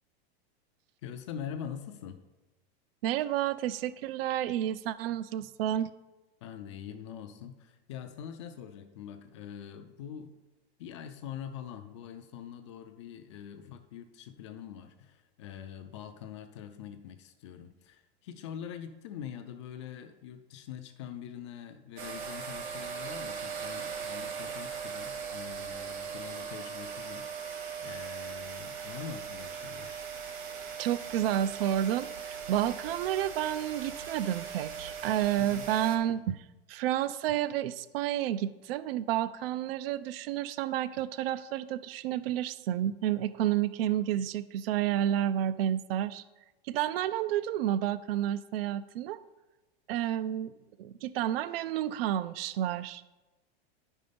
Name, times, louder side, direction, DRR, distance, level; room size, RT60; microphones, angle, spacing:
voice 1, 1.0-2.2 6.4-10.3 10.8-30.0 35.4-35.7, left 8 dB, 30° left, 8 dB, 0.4 m, -44 dB
voice 2, 3.0-5.9 30.8-46.2 46.6-49.2 49.9-50.5 50.8-53.0, right 11 dB, 65° right, 16 dB, 0.4 m, -30 dB
sound 1, 22.0-36.0, right 6 dB, 45° right, 1.2 m, -39 dB
9.8 x 5.4 x 5.1 m, 1.1 s
supercardioid pair, 170°, 32 cm